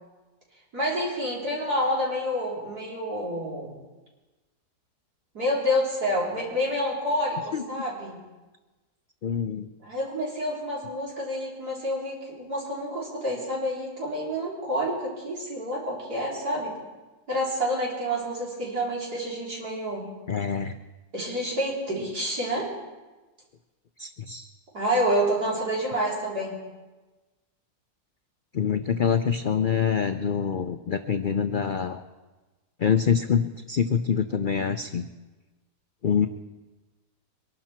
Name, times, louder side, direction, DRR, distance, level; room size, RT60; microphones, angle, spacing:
voice 1, 0.7-3.8 5.3-8.2 9.8-16.7 17.3-20.1 21.1-22.7 24.3-24.4 24.7-26.5, equal, 70° right, -5 dB, 4.5 m, -28 dB
voice 2, 7.5-7.8 9.2-9.7 20.3-20.8 24.0-24.3 28.5-32.0 32.8-35.1 36.0-36.3, left 7 dB, 90° left, 8 dB, 0.4 m, -25 dB
23.5 x 12.0 x 4.4 m, 1.2 s
omnidirectional pair, 1.7 m